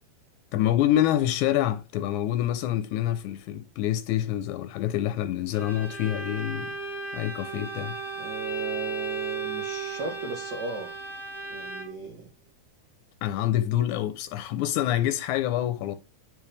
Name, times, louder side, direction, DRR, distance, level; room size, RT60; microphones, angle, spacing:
voice 1, 0.5-6.8 7.1-8.0 13.2-15.9, left 12 dB, 85° left, 2.1 m, -26 dB
Bowed string instrument, 5.5-12.1, right 4 dB, ahead, 0.5 m, -35 dB
voice 2, 8.2-10.9 11.5-12.3, right 2 dB, 65° right, 1.1 m, -37 dB
10.0 x 4.8 x 3.3 m
omnidirectional pair, 3.5 m